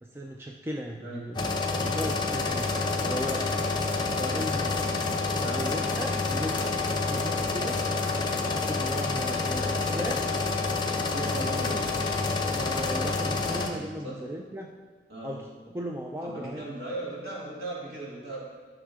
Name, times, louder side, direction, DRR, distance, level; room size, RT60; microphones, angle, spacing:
voice 1, 0.0-1.4 1.8-2.7 3.0-3.5 4.2-4.7 5.0-7.8 8.3-10.4 11.3-11.5 12.5-14.7 15.2-15.5 15.7-16.6, equal, 15° right, 1 dB, 0.4 m, -37 dB
voice 2, 1.0-1.3 4.3-4.5 5.4-5.6 11.1-11.8 14.0-14.2 15.1-15.3 16.2-18.4, right 2 dB, 60° right, -6 dB, 2.9 m, -37 dB
sound 1, 1.3-13.7, left 3 dB, 25° left, 0.8 m, -28 dB
11.5 x 6.0 x 3.6 m, 1.5 s
head